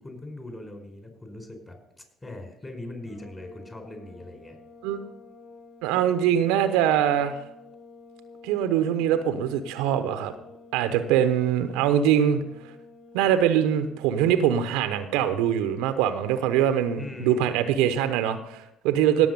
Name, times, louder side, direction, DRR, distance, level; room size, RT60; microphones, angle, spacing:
voice 1, 0.0-4.6 17.0-17.5 19.2-19.3, left 1 dB, 20° left, 4 dB, 4.5 m, -40 dB
sound 1, 3.0-14.1, left 3 dB, 65° left, 5.3 m, -49 dB
voice 2, 5.8-7.3 8.4-10.3 10.7-12.4 13.1-19.3, right 10 dB, 75° right, 9 dB, 0.9 m, -23 dB
17.0 x 7.0 x 5.5 m, 0.82 s
hypercardioid pair, 55°, 0 cm